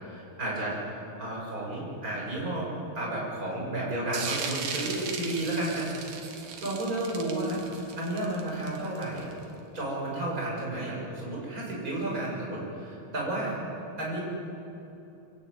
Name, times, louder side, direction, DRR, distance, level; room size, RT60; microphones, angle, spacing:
voice 1, 0.0-5.9 6.6-7.6 8.0-9.3 9.7-13.5 14.0-14.2, right 1 dB, 20° right, -4 dB, 7.2 m, -32 dB
sound 1, 4.1-9.4, right 5 dB, 55° right, 3.0 m, -37 dB
25.0 x 16.5 x 9.4 m, 2.8 s
omnidirectional pair, 5.0 m